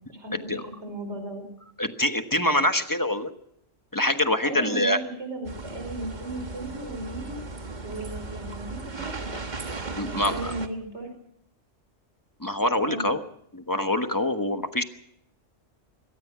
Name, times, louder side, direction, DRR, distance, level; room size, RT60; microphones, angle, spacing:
voice 1, 0.1-1.5 4.4-7.4 7.8-9.3 10.0-11.1 12.8-13.1, right 2 dB, 65° right, 6 dB, 5.1 m, -36 dB
voice 2, 1.8-3.3 3.9-5.0 10.0-10.5 12.4-13.2 13.5-14.8, left 1 dB, 15° left, 7 dB, 1.2 m, -25 dB
sound 1, 5.4-10.7, right 3 dB, 40° right, 1.5 m, -36 dB
23.5 x 18.5 x 6.1 m, 0.72 s
omnidirectional pair, 1.2 m